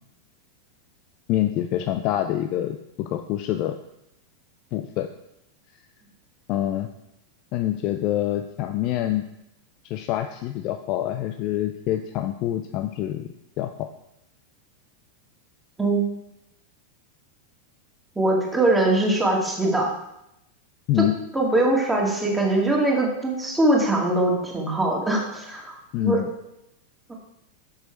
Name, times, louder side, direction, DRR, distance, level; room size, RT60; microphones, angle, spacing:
voice 1, 1.3-3.8 4.7-5.1 6.5-6.9 7.5-9.3 9.8-13.3 13.6-13.9 20.9-21.2 25.9-26.3, left 13 dB, 40° left, 7 dB, 0.4 m, -26 dB
voice 2, 18.2-19.9 21.3-26.2, right 2 dB, 5° right, -2 dB, 2.0 m, -22 dB
6.8 x 6.3 x 4.4 m, 0.84 s
figure-of-eight pair, 90°, 0 cm